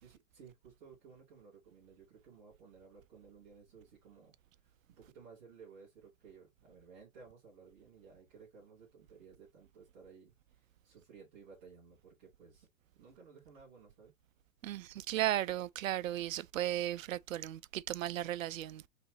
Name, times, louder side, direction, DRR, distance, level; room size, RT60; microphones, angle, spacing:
voice 1, 0.0-4.4 5.0-10.3 10.8-12.7 12.9-14.1, right 5 dB, 5° right, 0.5 m, -57 dB
voice 2, 14.6-18.9, right 13 dB, 70° right, 0.5 m, -35 dB
3.9 x 3.3 x 4.0 m
hypercardioid pair, 175°, 41 cm